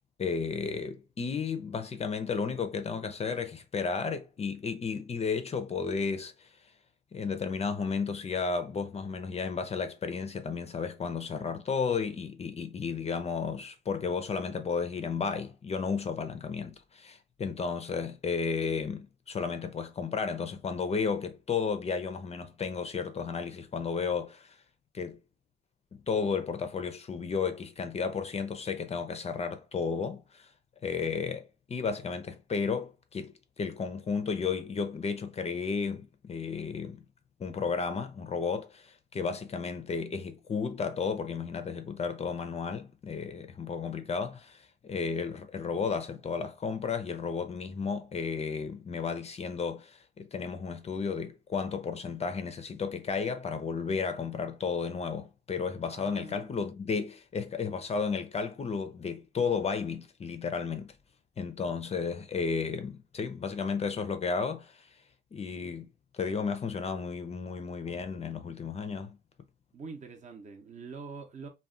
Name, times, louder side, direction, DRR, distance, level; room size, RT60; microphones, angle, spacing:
voice 1, 0.2-6.5 7.1-24.6 24.9-25.2 25.9-30.5 30.8-37.0 37.4-60.9 61.4-64.9 65.3-65.9 66.1-69.2, left 5 dB, 35° left, 0.4 m, -33 dB
voice 2, 55.9-56.6 69.7-71.5, right 5 dB, 40° right, 0.7 m, -44 dB
2.3 x 2.1 x 3.6 m
cardioid pair, 90°, 20 cm